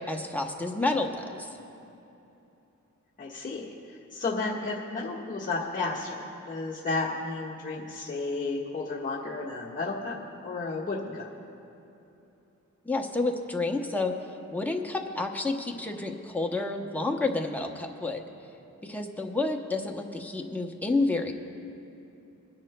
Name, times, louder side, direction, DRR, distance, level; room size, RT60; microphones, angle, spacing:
voice 1, 0.0-1.6 12.8-14.1 14.5-18.3 18.8-21.3, left 2 dB, 5° left, 2 dB, 0.7 m, -30 dB
voice 2, 3.2-10.2 10.4-11.3, left 3 dB, 25° left, -6 dB, 1.4 m, -32 dB
27.5 x 10.5 x 2.2 m, 2.9 s
wide cardioid pair, 145°, 30 cm